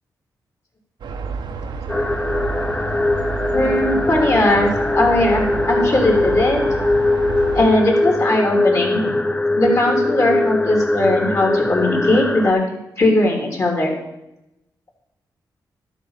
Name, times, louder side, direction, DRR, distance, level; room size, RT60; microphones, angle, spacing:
sound 1, 1.0-7.7, right 5 dB, 80° right, 1.0 m, -30 dB
sound 2, 1.9-12.5, left 2 dB, 15° left, 0.4 m, -21 dB
voice 1, 3.5-4.7 4.9-6.6 7.5-9.2 9.5-12.6 13.0-13.9, left 1 dB, 40° left, 0 dB, 3.0 m, -18 dB
11.5 x 4.3 x 7.2 m, 0.91 s
cardioid pair, 80°, 8 cm